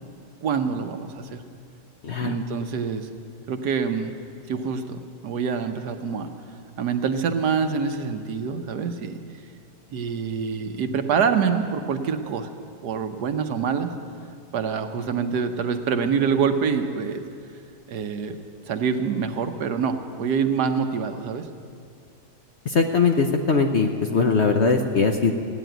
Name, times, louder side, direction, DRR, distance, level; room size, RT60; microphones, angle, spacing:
voice 1, 0.4-1.4 2.2-3.1 3.5-4.1 4.5-6.3 6.8-9.2 9.9-12.5 12.8-13.9 14.5-17.2 17.9-18.4 18.7-21.5, right 6 dB, 70° right, 7 dB, 1.4 m, -26 dB
voice 2, 2.0-2.4 22.7-25.3, left 4 dB, 50° left, 4 dB, 0.9 m, -21 dB
16.0 x 9.3 x 9.0 m, 2.4 s
omnidirectional pair, 1.8 m